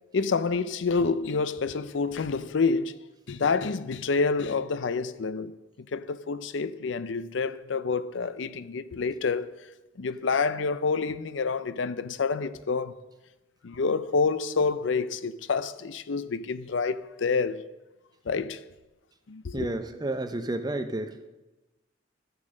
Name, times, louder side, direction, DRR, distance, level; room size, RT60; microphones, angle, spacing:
voice 1, 0.1-3.0 3.3-9.6 10.0-12.9 13.6-17.7 18.3-18.6 19.3-19.7, left 4 dB, 65° left, 0.5 m, -28 dB
voice 2, 19.5-21.3, right 2 dB, 20° right, 0.7 m, -31 dB
13.0 x 7.1 x 6.4 m
head